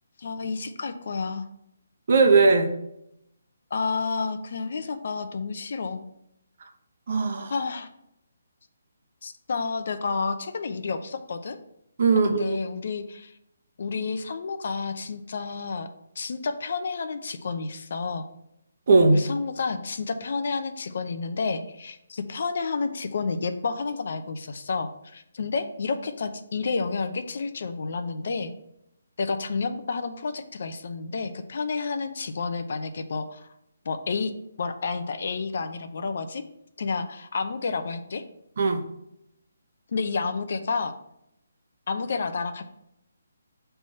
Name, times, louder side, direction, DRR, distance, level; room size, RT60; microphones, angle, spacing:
voice 1, 0.2-1.5 3.7-6.0 7.5-7.9 9.2-11.6 12.2-13.3 13.8-15.9 16.2-18.3 19.1-28.5 29.2-33.5 33.8-34.3 34.6-36.4 36.8-38.2 39.9-40.9 41.9-42.7, left 4 dB, 55° left, 9 dB, 0.7 m, -30 dB
voice 2, 2.1-2.7 7.1-7.5 12.0-12.6 18.9-19.3 38.6-38.8, right 3 dB, 50° right, 5 dB, 0.9 m, -19 dB
6.1 x 3.4 x 5.4 m, 0.80 s
hypercardioid pair, 160°, 0 cm